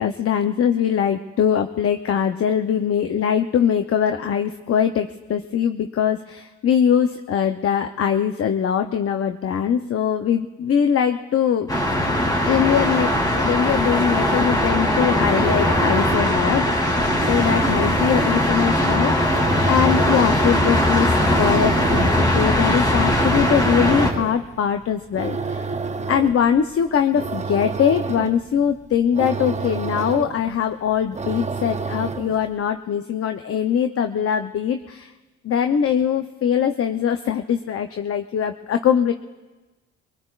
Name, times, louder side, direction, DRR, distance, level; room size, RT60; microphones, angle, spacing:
voice 1, 0.0-12.1 12.5-16.7 17.3-25.7 26.1-35.1 35.4-39.1, left 8 dB, 50° left, 7 dB, 0.7 m, -22 dB
sound 1, 11.7-24.1, left 1 dB, 15° left, 2.7 m, -20 dB
sound 2, 15.1-32.5, right 4 dB, 25° right, 0.7 m, -30 dB
23.5 x 20.5 x 2.4 m, 1.2 s
cardioid pair, 90°, 30 cm